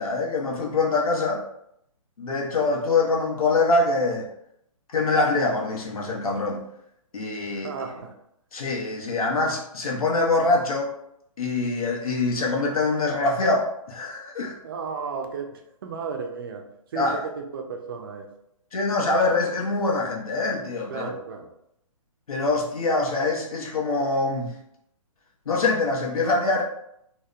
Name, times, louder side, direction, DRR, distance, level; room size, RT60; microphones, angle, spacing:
voice 1, 0.0-1.4 2.2-4.3 4.9-6.6 7.1-7.7 8.5-10.9 11.4-14.5 16.9-17.3 18.7-21.1 22.3-24.6 25.5-26.6, left 3 dB, 90° left, -1 dB, 0.8 m, -24 dB
voice 2, 7.5-8.1 14.6-16.7 16.9-18.3 20.9-21.5, right 5 dB, 40° right, 4 dB, 0.4 m, -34 dB
2.8 x 2.0 x 2.3 m, 0.76 s
hypercardioid pair, 155°, 18 cm